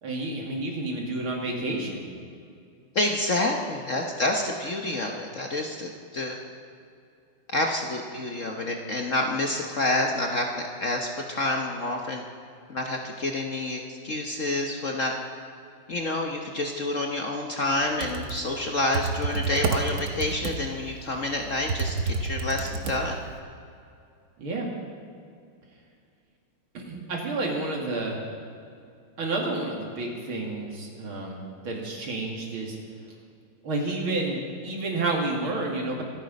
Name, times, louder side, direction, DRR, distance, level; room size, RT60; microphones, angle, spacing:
voice 1, 0.0-2.1 24.4-24.7 26.7-28.2 29.2-32.8 33.6-36.0, right 2 dB, 70° right, 0 dB, 3.3 m, -30 dB
voice 2, 2.9-6.4 7.5-12.2 12.7-15.1 15.9-23.2, left 2 dB, 45° left, 2 dB, 1.2 m, -28 dB
Computer keyboard, 17.8-23.4, right 4 dB, 50° right, 1.1 m, -30 dB
26.0 x 9.2 x 5.3 m, 2.5 s
omnidirectional pair, 2.3 m